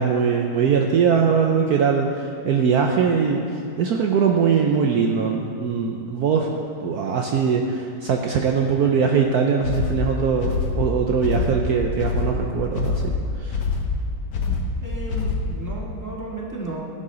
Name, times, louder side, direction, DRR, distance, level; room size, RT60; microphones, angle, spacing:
voice 1, 0.0-3.4 3.8-6.5 6.8-13.1 13.4-13.6, right 6 dB, 65° right, 2 dB, 1.2 m, -21 dB
sound 1, 9.6-15.7, left 4 dB, 70° left, 1.7 m, -25 dB
voice 2, 14.8-17.0, right 2 dB, 10° right, -3 dB, 1.7 m, -33 dB
17.5 x 10.0 x 3.9 m, 2.5 s
omnidirectional pair, 1.9 m